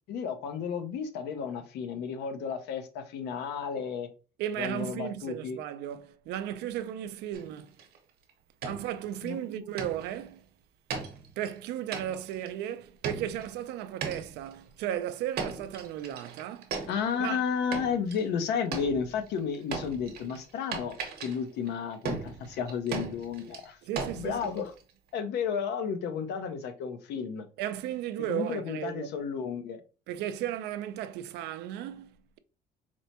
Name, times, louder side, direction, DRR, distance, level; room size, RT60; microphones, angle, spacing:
voice 1, 0.1-4.1 4.6-5.6 9.2-9.4 16.9-23.8 24.1-24.7 25.1-27.4 28.3-29.8, left 6 dB, 80° left, 0.6 m, -32 dB
voice 2, 4.4-7.8 8.6-10.5 11.4-16.8 17.2-17.4 23.9-24.6 27.6-29.1 30.1-32.4, right 11 dB, 85° right, 0.4 m, -35 dB
sound 1, 7.3-8.0 8.3-8.4 8.6-9.3 9.8-10.2 10.9-11.6 11.9-12.5 13.0-13.6 14.0-14.5 15.4-17.4 17.7-18.4 18.7-24.9, right 5 dB, 70° right, 0.8 m, -38 dB
4.3 x 2.1 x 2.8 m
cardioid pair, 110°, 17 cm